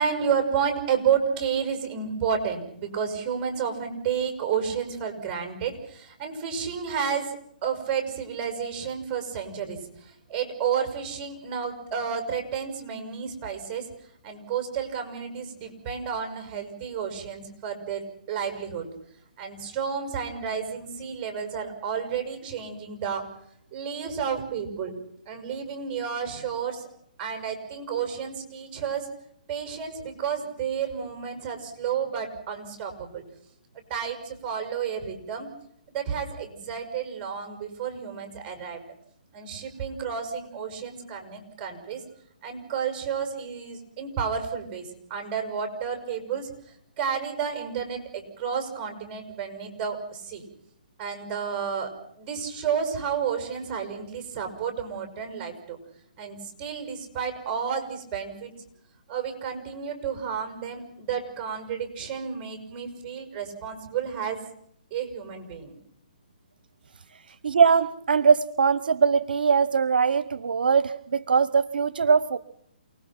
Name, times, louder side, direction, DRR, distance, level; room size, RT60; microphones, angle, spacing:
voice 1, 0.0-7.4 7.6-13.9 14.2-18.9 19.4-23.2 23.7-24.9 25.3-26.9 27.2-29.1 29.5-33.2 33.7-35.5 35.9-38.8 39.3-42.0 42.4-46.5 47.0-50.4 51.0-51.9 52.2-55.8 56.2-58.5 59.1-64.4 64.9-65.7, right 7 dB, 25° right, 5 dB, 6.3 m, -31 dB
voice 2, 67.4-72.4, right 5 dB, 75° right, 17 dB, 1.0 m, -21 dB
28.5 x 20.0 x 6.0 m, 0.70 s
hypercardioid pair, 155°, 5 cm